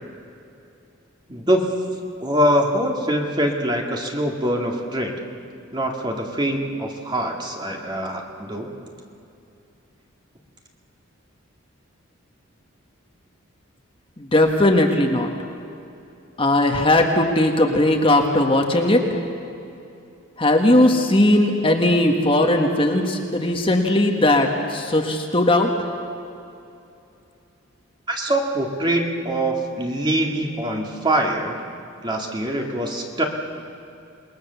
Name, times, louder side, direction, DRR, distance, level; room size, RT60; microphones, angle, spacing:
voice 1, 1.3-1.6 2.2-5.1 5.7-8.7 28.1-31.6 32.0-33.2, right 1 dB, 20° right, 1 dB, 2.1 m, -23 dB
voice 2, 14.2-15.3 16.4-19.0 20.4-25.7, left 1 dB, 25° left, 3 dB, 1.6 m, -18 dB
27.5 x 20.0 x 7.0 m, 2.7 s
head